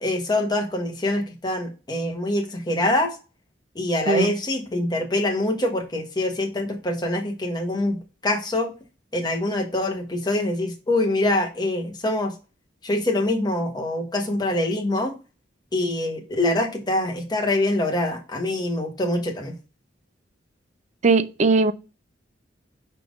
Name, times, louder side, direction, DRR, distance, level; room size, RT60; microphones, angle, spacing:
voice 1, 0.0-3.1 3.7-8.0 8.2-8.7 9.1-12.3 12.8-15.1 15.7-19.5, left 1 dB, 20° left, 1.4 m, -24 dB
voice 2, 21.0-21.7, right 3 dB, 40° right, 0.5 m, -19 dB
5.3 x 4.3 x 5.1 m
head